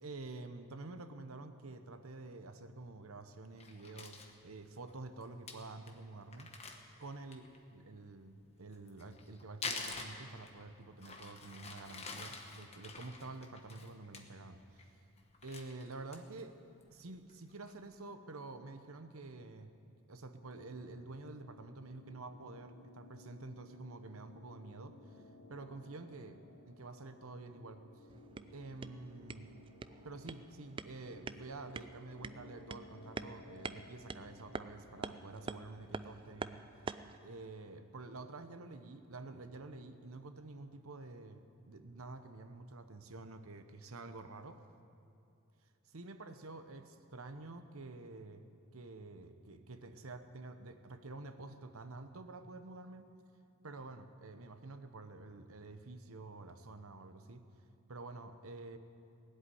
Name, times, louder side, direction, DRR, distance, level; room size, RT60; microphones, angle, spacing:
voice 1, 0.0-6.5 7.0-7.4 7.7-14.9 15.4-16.6 16.9-19.7 20.1-25.2 25.5-27.8 28.5-29.5 30.0-36.6 37.2-44.6 45.9-48.4 48.7-53.1 53.6-57.4 57.9-58.8, right 3 dB, 80° right, 9 dB, 0.9 m, -49 dB
Crumpling crinkling, 3.6-4.3 4.9-5.0 5.2-5.3 5.5-5.6 5.9-6.0 6.3-7.6 8.7-10.7 11.0-14.2 14.6-14.9 15.2-16.4 16.8-16.9 17.3-17.7, left 4 dB, 30° left, 1.1 m, -46 dB
sound 1, 20.4-35.5, left 2 dB, 75° left, 3.5 m, -59 dB
sound 2, 28.1-37.2, right 4 dB, 25° right, 0.3 m, -47 dB
17.5 x 8.0 x 9.8 m, 2.6 s
head